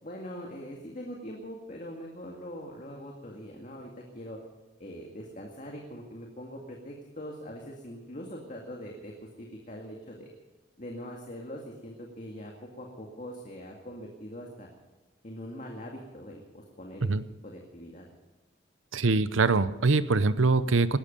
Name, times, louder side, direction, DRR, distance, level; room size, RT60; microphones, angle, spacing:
voice 1, 0.0-4.4 4.8-10.3 10.8-14.7 15.2-17.1 17.4-18.1, equal, 40° left, 0 dB, 2.1 m, -42 dB
voice 2, 18.9-21.0, right 3 dB, 80° right, 14 dB, 0.8 m, -23 dB
19.5 x 13.0 x 5.3 m, 1.2 s
head